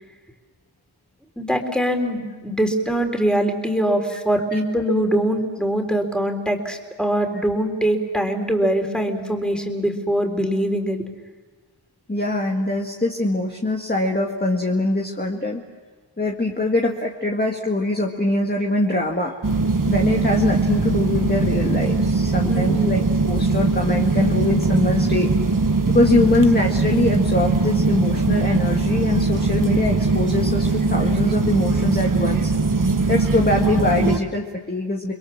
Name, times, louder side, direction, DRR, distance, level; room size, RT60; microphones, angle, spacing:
voice 1, 1.4-11.0 22.4-22.9, right 1 dB, ahead, 4 dB, 3.9 m, -22 dB
voice 2, 12.1-15.6 16.2-19.3 19.9-25.3 25.9-32.5 33.1-35.1, left 2 dB, 20° left, 0 dB, 1.9 m, -23 dB
sound 1, 19.4-34.2, right 3 dB, 45° right, 1.4 m, -20 dB
30.0 x 22.0 x 7.3 m, 1.3 s
wide cardioid pair, 50°, 46 cm